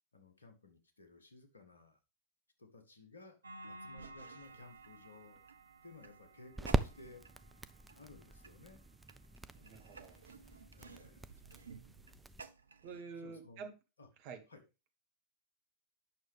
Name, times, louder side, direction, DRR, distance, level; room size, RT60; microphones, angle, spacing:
voice 1, 0.1-2.0 2.6-3.4 3.6-5.5 5.8-7.2 7.9-8.8 10.7-11.4 13.1-13.6 14.0-14.1 14.5-14.6, left 3 dB, 75° left, 6 dB, 1.3 m, -57 dB
sound 1, 3.4-13.0, right 3 dB, 75° right, 0.5 m, -54 dB
sound 2, 4.5-12.4, right 2 dB, 10° right, 0.4 m, -42 dB
voice 2, 9.5-10.2 12.8-13.7 14.2-14.4, right 5 dB, 45° right, 5 dB, 1.4 m, -48 dB
8.8 x 6.2 x 3.4 m, 0.29 s
figure-of-eight pair, 90°, 0 cm